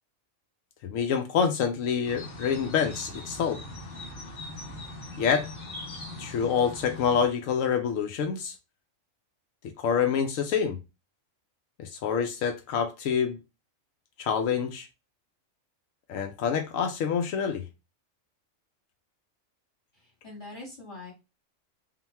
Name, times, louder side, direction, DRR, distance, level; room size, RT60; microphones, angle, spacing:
voice 1, 0.8-3.6 5.2-5.5 6.2-8.6 9.8-10.8 11.8-13.4 14.2-14.9 16.1-17.6, left 7 dB, 80° left, 1.0 m, -27 dB
sound 1, 2.0-7.3, left 1 dB, 60° left, 1.5 m, -41 dB
voice 2, 19.9-21.1, left 2 dB, 35° left, 1.7 m, -43 dB
3.9 x 2.2 x 4.1 m
omnidirectional pair, 1.4 m